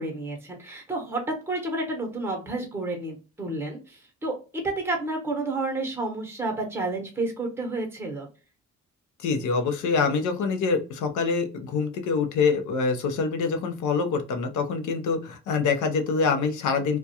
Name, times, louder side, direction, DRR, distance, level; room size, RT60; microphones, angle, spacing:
voice 1, 0.0-8.3, right 2 dB, 10° right, 2 dB, 0.8 m, -30 dB
voice 2, 9.2-17.0, left 4 dB, 75° left, 6 dB, 0.6 m, -25 dB
2.3 x 2.2 x 2.7 m, 0.33 s
cardioid pair, 90°, 30 cm